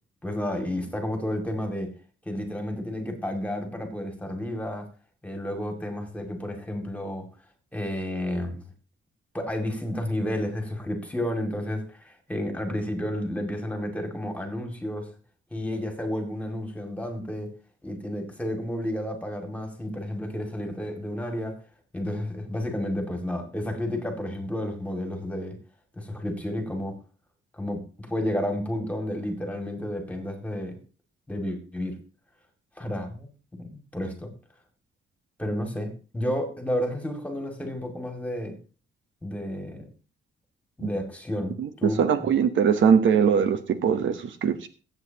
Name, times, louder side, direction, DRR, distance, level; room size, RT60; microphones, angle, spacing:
voice 1, 0.2-1.9 2.3-4.9 5.2-7.3 7.7-8.7 9.3-15.1 15.5-17.5 17.8-21.6 21.9-25.6 25.9-27.0 27.6-30.8 31.3-32.0 32.8-34.3 35.4-38.6 39.2-39.8 40.8-42.3, left 1 dB, 5° left, 4 dB, 2.2 m, -31 dB
voice 2, 41.6-44.7, right 7 dB, 65° right, 9 dB, 1.0 m, -22 dB
22.5 x 8.2 x 2.9 m, 0.36 s
wide cardioid pair, 160°, 21 cm